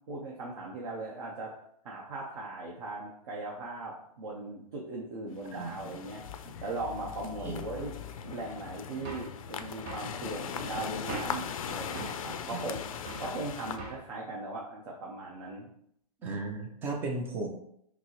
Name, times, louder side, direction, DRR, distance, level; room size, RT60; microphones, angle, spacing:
voice 1, 0.1-1.5 1.8-6.2 6.6-7.9 8.2-12.8 13.2-15.7, right 2 dB, 55° right, -3 dB, 0.9 m, -39 dB
sound 1, 5.3-13.8, left 8 dB, 55° left, 0.4 m, -39 dB
sound 2, 9.0-9.4 9.9-10.1 11.1-11.5 11.9-12.2 13.1-13.3 13.8-14.1, right 2 dB, 35° right, 1.1 m, -40 dB
voice 2, 12.0-12.6 16.2-17.5, right 3 dB, 10° right, 2 dB, 0.4 m, -36 dB
5.9 x 2.0 x 2.9 m, 0.71 s
hypercardioid pair, 150°, 20 cm